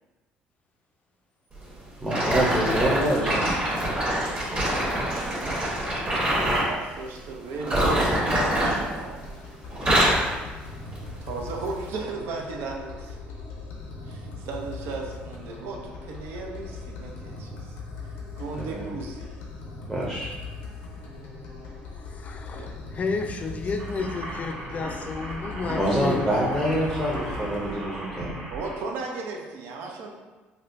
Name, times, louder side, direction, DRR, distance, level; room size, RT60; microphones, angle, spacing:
voice 1, 2.0-3.5 18.6-18.8 19.9-20.3 25.7-28.3, right 1 dB, 5° right, -5 dB, 0.7 m, -26 dB
sound 1, 2.1-6.7 7.6-9.4 9.7-10.3 10.9-11.1 11.8-11.9, right 1 dB, 35° right, 1.2 m, -24 dB
voice 2, 6.6-9.2 11.2-13.7 14.1-17.7 18.4-19.3 22.5-22.7 28.5-30.1, right 4 dB, 75° right, 1 dB, 0.5 m, -36 dB
sound 2, 9.2-27.7, left 3 dB, 85° left, 0.6 m, -40 dB
voice 3, 22.0-26.5, left 4 dB, 40° left, 4 dB, 0.4 m, -32 dB
sound 3, 23.8-28.8, right 1 dB, 55° right, 1.4 m, -36 dB
4.0 x 2.2 x 2.5 m, 1.2 s
supercardioid pair, 90°, 4 cm